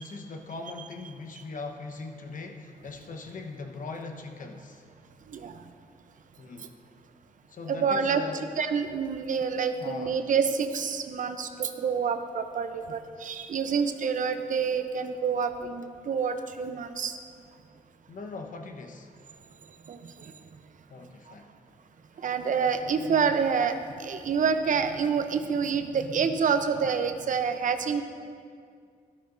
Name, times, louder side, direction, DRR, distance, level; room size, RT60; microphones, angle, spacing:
voice 1, 0.0-4.9 6.4-6.7 7.5-8.5 9.8-10.2 12.9-13.0 18.1-19.1 20.9-21.5 22.2-22.3, left 3 dB, 60° left, 4 dB, 1.1 m, -40 dB
voice 2, 5.3-5.6 7.7-8.2 8.6-17.2 19.9-20.3 22.2-28.0, right 6 dB, 60° right, 8 dB, 0.7 m, -27 dB
13.0 x 12.0 x 2.6 m, 2.2 s
cardioid pair, 65°, 15 cm